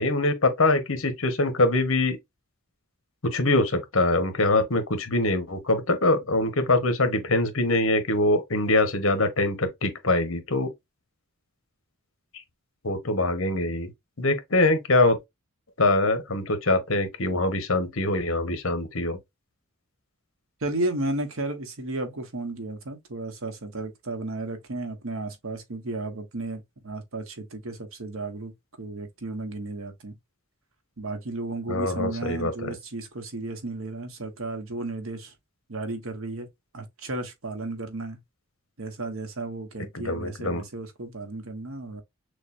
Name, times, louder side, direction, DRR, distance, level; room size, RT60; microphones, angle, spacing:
voice 1, 0.0-2.2 3.2-10.7 12.8-13.9 14.2-15.2 15.8-19.2 31.7-32.7 39.9-40.6, left 2 dB, 65° left, 1.2 m, -23 dB
voice 2, 20.6-30.2 31.0-35.3 35.7-36.5 36.7-38.2 38.8-42.0, right 2 dB, 70° right, 1.2 m, -33 dB
6.4 x 2.4 x 2.6 m
head